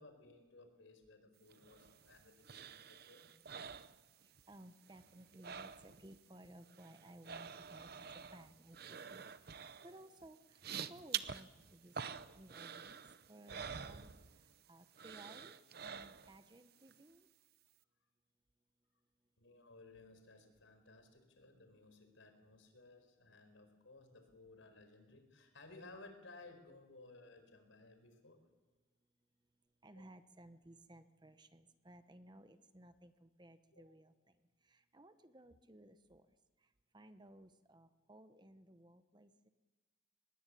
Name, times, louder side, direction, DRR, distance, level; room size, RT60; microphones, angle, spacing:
voice 1, 0.0-3.3 9.8-9.9 19.4-28.4 29.9-30.1 33.7-33.8, left 3 dB, 75° left, 7 dB, 4.7 m, -59 dB
sound 1, 1.5-4.6 4.8-6.2 6.4-14.6 14.9-16.5 16.9-17.0, right 7 dB, 50° right, 0.8 m, -48 dB
voice 2, 4.2-13.0 13.3-14.1 14.7-17.3 29.8-34.4 34.6-36.3 36.9-39.5, right 1 dB, 20° right, 10 dB, 1.0 m, -59 dB
23.5 x 21.0 x 8.5 m, 1.2 s
head